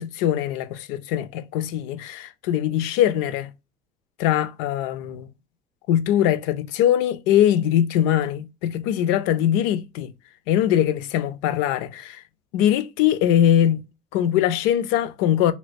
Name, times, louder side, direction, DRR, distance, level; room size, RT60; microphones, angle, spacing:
voice 1, 0.0-3.5 4.2-5.3 5.9-10.1 10.5-12.2 12.5-13.8 14.1-15.5, left 11 dB, 85° left, 0.4 m, -22 dB
3.2 x 2.8 x 2.5 m
supercardioid pair, 95°, 18 cm